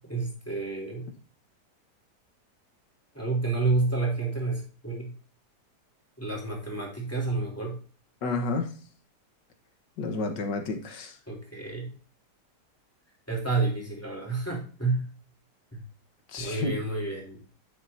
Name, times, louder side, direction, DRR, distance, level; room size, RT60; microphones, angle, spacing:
voice 1, 0.1-1.1 3.1-5.1 6.2-7.8 11.3-11.9 13.3-15.1 15.7-15.8 16.4-17.4, right 3 dB, 10° left, -2 dB, 3.4 m, -29 dB
voice 2, 8.2-8.7 10.0-11.2 16.3-16.8, left 3 dB, 85° left, 6 dB, 1.9 m, -30 dB
9.4 x 7.7 x 2.7 m, 0.38 s
omnidirectional pair, 1.8 m